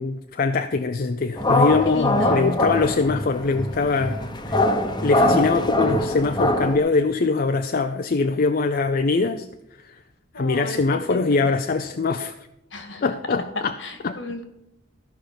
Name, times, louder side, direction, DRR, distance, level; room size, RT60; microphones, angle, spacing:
voice 1, 0.0-4.6 5.0-9.5 9.8-9.9 10.4-12.3 13.0-13.7 14.0-14.2, left 3 dB, 50° left, 7 dB, 0.5 m, -22 dB
sound 1, 1.4-6.8, left 1 dB, 25° left, 1.0 m, -23 dB
voice 2, 1.8-2.6 10.3-11.5 12.7-13.0 13.8-14.5, left 2 dB, 70° left, 7 dB, 1.8 m, -33 dB
14.0 x 5.8 x 5.2 m, 0.87 s
head